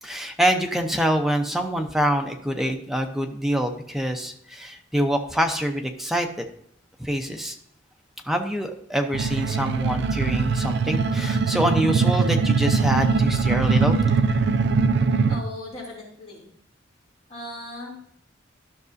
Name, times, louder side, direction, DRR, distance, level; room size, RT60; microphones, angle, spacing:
voice 1, 0.0-6.5 7.0-7.6 8.2-14.0, equal, ahead, 4 dB, 0.7 m, -25 dB
sound 1, 9.1-15.4, right 4 dB, 65° right, 0.5 m, -21 dB
voice 2, 15.3-16.5 17.3-18.0, left 1 dB, 35° left, -5 dB, 2.9 m, -38 dB
12.0 x 6.0 x 2.6 m, 0.67 s
head